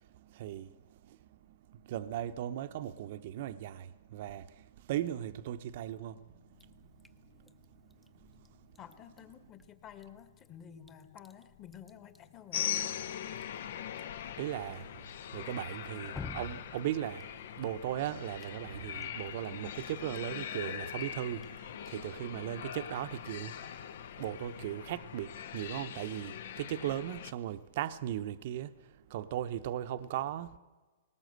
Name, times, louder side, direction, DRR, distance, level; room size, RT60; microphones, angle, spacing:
voice 1, 0.0-6.2 6.6-7.1 7.7-7.8 8.2-8.4 14.4-17.3 17.6-30.6, right 12 dB, 50° right, 0.8 m, -38 dB
sound 1, 5.8-23.3, left 8 dB, 45° left, 4.5 m, -65 dB
Drip, 6.5-24.8, left 4 dB, 5° left, 0.8 m, -55 dB
voice 2, 8.8-12.9, left 9 dB, 25° left, 1.8 m, -51 dB
sound 2, 12.5-27.3, left 9 dB, 65° left, 1.1 m, -41 dB
20.0 x 18.5 x 8.0 m
hypercardioid pair, 150°, 0 cm